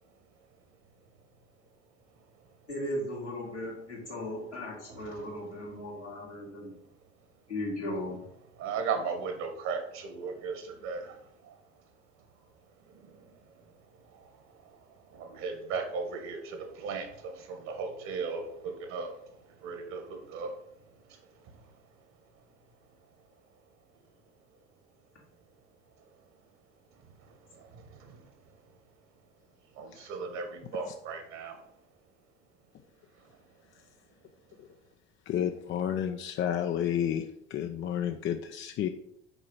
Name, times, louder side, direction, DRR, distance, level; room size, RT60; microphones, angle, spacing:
voice 1, 2.7-6.8 7.5-8.2 36.4-36.5, left 1 dB, 90° left, -6 dB, 2.7 m, -37 dB
voice 2, 4.9-5.3 8.6-11.6 12.8-13.6 13.9-20.6 21.1-21.7 27.1-28.4 29.7-31.7, right 5 dB, 55° right, 5 dB, 1.8 m, -38 dB
voice 3, 35.3-37.2 37.5-38.9, left 9 dB, 35° left, 6 dB, 0.6 m, -30 dB
6.9 x 4.9 x 5.6 m, 0.74 s
figure-of-eight pair, 60°, 34 cm